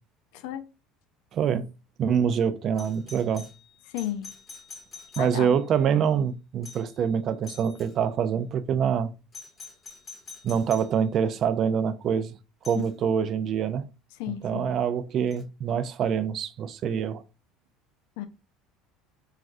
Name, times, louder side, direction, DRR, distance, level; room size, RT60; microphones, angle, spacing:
voice 1, 0.3-0.6 3.9-4.3 5.2-5.6 14.1-14.7 18.2-18.3, left 12 dB, 80° left, 0.4 m, -33 dB
voice 2, 1.3-1.7 2.0-3.5 5.2-9.1 10.4-12.3 12.7-13.9 14.3-17.2, right 7 dB, 50° right, 0.3 m, -25 dB
Doorbell, 2.8-5.7 6.6-7.0 7.4-8.0 9.3-11.0 12.6-12.9 15.3-15.4, left 4 dB, 30° left, 0.8 m, -46 dB
3.2 x 2.4 x 2.4 m
supercardioid pair, 105°, 0 cm